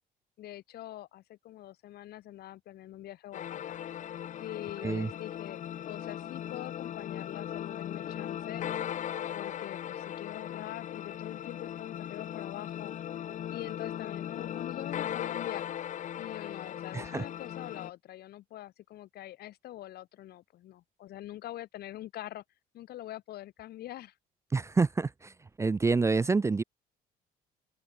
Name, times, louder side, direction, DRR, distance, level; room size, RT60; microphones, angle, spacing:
voice 1, 0.4-3.8 4.4-8.6 9.3-12.9 13.5-15.6 16.2-22.4 22.7-24.1, left 14 dB, 70° left, 1.7 m, -44 dB
sound 1, 3.3-17.9, left 10 dB, 45° left, 0.7 m, -38 dB
voice 2, 16.9-17.2 24.5-25.3 25.6-26.6, right 4 dB, 15° right, 0.5 m, -27 dB
open air
cardioid pair, 110°, 17 cm